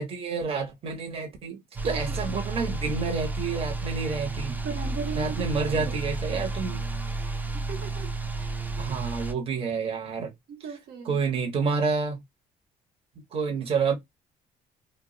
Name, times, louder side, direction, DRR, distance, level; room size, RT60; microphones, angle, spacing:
voice 1, 0.0-1.6 1.8-4.6 5.2-6.8 8.8-10.3 11.0-12.2 13.3-13.9, right 5 dB, 35° right, 0.8 m, -29 dB
sound 1, 1.8-9.3, right 3 dB, 10° right, 0.4 m, -32 dB
voice 2, 1.8-2.3 4.5-6.0 6.3-6.5 7.5-8.9 10.5-11.2, right 6 dB, 65° right, 0.9 m, -39 dB
2.2 x 2.0 x 3.7 m
cardioid pair, 110°, 17 cm